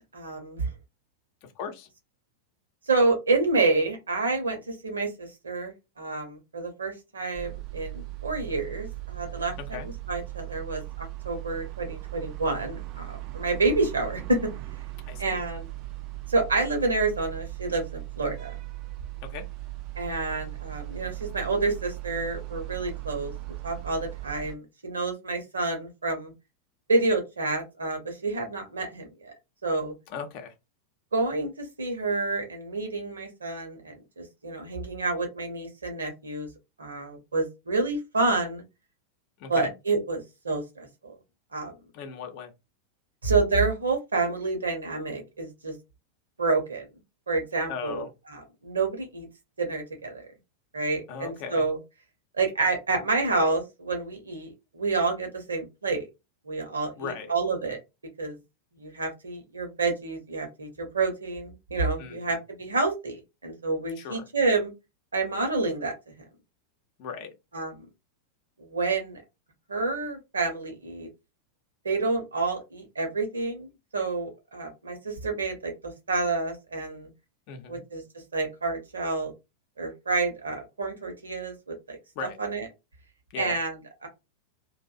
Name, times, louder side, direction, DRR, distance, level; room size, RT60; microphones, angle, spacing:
voice 1, 0.1-0.7 2.9-9.5 10.1-14.4 15.2-15.7 16.3-18.6 20.0-23.3 23.6-26.3 26.9-29.3 29.6-29.9 31.1-36.5 36.8-38.6 39.5-41.2 41.5-41.7 43.2-45.7 46.4-46.9 47.3-48.0 48.3-49.3 49.6-50.3 50.7-51.8 52.3-56.1 56.5-57.8 58.2-58.4 58.8-64.7 65.1-65.9 67.5-67.8 68.6-69.2 69.7-71.1 71.8-77.1 77.7-78.0 78.3-79.3 79.8-82.0 82.4-82.6 83.4-83.7 84.0-84.1, right 3 dB, 75° right, 0.7 m, -28 dB
voice 2, 1.4-1.9 9.6-9.9 15.0-15.5 19.2-19.5 30.1-30.5 39.4-39.7 41.9-42.5 47.7-48.1 51.1-51.6 57.0-57.3 62.0-62.4 63.9-64.3 67.0-67.3 77.5-77.8 82.1-82.4 83.3-83.6, left 6 dB, 45° left, 0.6 m, -38 dB
sound 1, 7.3-24.6, right 20 dB, 40° right, 0.3 m, -38 dB
2.5 x 2.0 x 2.4 m
figure-of-eight pair, 90°, 0 cm